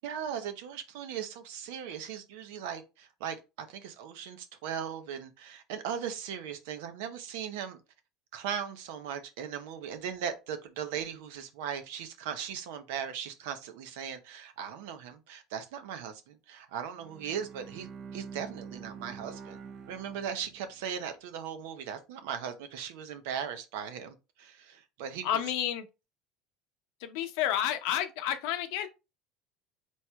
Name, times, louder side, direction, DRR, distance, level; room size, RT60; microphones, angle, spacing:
voice 1, 0.0-7.8 8.3-19.6 19.9-25.5, right 8 dB, 80° right, 0.8 m, -38 dB
Bowed string instrument, 17.0-21.0, right 6 dB, 45° right, 0.6 m, -46 dB
voice 2, 25.2-25.8 27.0-28.9, left 11 dB, 75° left, 0.7 m, -30 dB
4.6 x 4.2 x 2.3 m
supercardioid pair, 105°, 0 cm